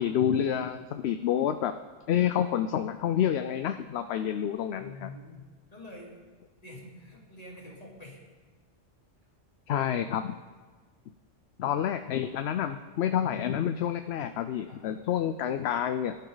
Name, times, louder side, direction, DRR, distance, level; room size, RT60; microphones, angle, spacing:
voice 1, 0.0-1.8 2.1-5.1 9.7-10.4 11.6-16.2, left 9 dB, 65° left, 9 dB, 0.8 m, -28 dB
voice 2, 4.8-5.4 5.7-6.2 6.6-8.3 13.2-13.4 14.7-15.2, left 1 dB, 30° left, -3 dB, 3.0 m, -47 dB
22.0 x 12.0 x 4.0 m, 1.5 s
omnidirectional pair, 1.3 m